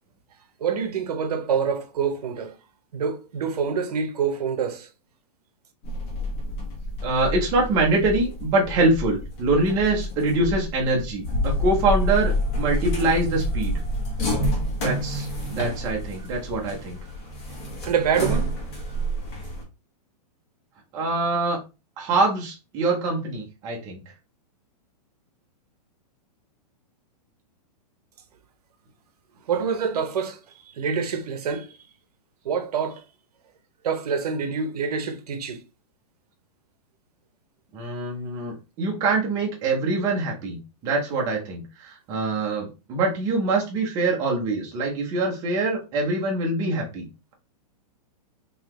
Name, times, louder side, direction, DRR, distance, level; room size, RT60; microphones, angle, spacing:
voice 1, 0.6-2.6 2.9-4.9 17.8-18.6 29.5-30.4 30.7-31.8 32.4-33.0 33.8-35.6, right 6 dB, 70° right, 0.8 m, -26 dB
sound 1, 5.8-19.6, equal, 40° left, 1.4 m, -28 dB
voice 2, 7.0-13.8 14.8-17.0 20.9-21.6 22.0-24.0 37.7-47.1, right 2 dB, 15° right, 0.7 m, -24 dB
3.9 x 2.8 x 3.0 m
supercardioid pair, 175°, 21 cm